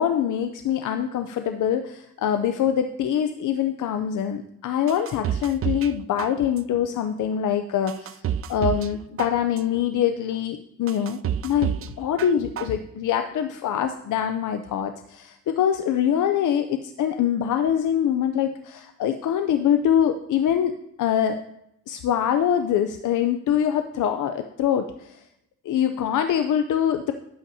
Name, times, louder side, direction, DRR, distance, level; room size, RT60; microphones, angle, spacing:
voice 1, 0.0-8.2 8.5-20.7 21.0-21.4 21.9-25.2 25.6-27.1, left 9 dB, 75° left, 7 dB, 0.6 m, -24 dB
sound 1, 4.9-5.9 6.2-6.8 7.3-7.4 7.9-8.9 9.2-9.8 10.3-10.4 10.9-11.9 12.2-12.8 13.1-13.2, right 9 dB, 45° right, 0.4 m, -29 dB
12.5 x 8.3 x 2.8 m, 0.79 s
cardioid pair, 85°, 31 cm